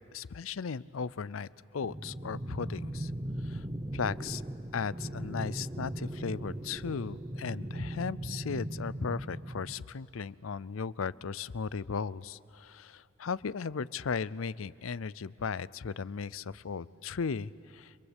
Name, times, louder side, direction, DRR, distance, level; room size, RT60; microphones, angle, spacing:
voice 1, 0.1-3.1 3.4-3.7 3.9-4.4 4.7-18.0, left 5 dB, 90° left, 20 dB, 0.6 m, -36 dB
sound 1, 1.8-9.8, right 1 dB, 20° right, 0.8 m, -38 dB
30.0 x 23.0 x 8.2 m, 2.8 s
head